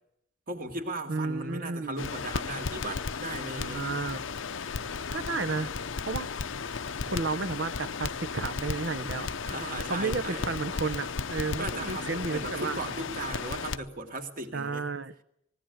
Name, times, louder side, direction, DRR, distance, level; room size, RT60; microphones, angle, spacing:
voice 1, 0.5-3.8 9.4-10.5 11.6-14.9, right 2 dB, 45° right, 6 dB, 2.3 m, -37 dB
voice 2, 1.1-2.1 3.6-4.2 5.1-5.7 6.0-6.3 7.0-9.3 9.9-12.8 14.5-15.1, right 4 dB, 65° right, 12 dB, 0.8 m, -32 dB
Crackle, 2.0-13.8, left 5 dB, 90° left, 0.7 m, -35 dB
19.5 x 17.0 x 9.1 m, 0.76 s
head